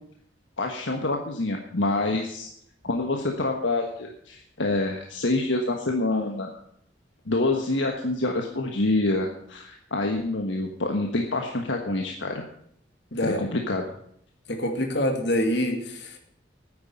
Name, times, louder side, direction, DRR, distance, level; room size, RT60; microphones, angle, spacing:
voice 1, 0.6-2.5 2.8-6.5 7.3-12.4 13.2-13.8, left 2 dB, 80° left, 3 dB, 1.4 m, -26 dB
voice 2, 13.1-13.4 14.5-16.2, equal, 65° left, 4 dB, 2.4 m, -26 dB
9.7 x 9.6 x 8.7 m, 0.70 s
head